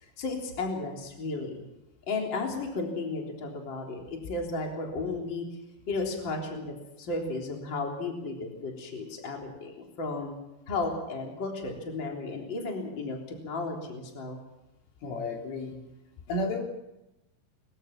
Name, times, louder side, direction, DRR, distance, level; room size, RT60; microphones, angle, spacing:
voice 1, 0.2-1.6 2.1-5.4 5.9-10.4 10.7-14.4, left 3 dB, 25° left, 1 dB, 3.6 m, -34 dB
voice 2, 15.0-15.8 16.3-16.6, left 2 dB, 85° left, 1 dB, 6.1 m, -32 dB
22.5 x 21.5 x 6.0 m, 0.93 s
omnidirectional pair, 5.5 m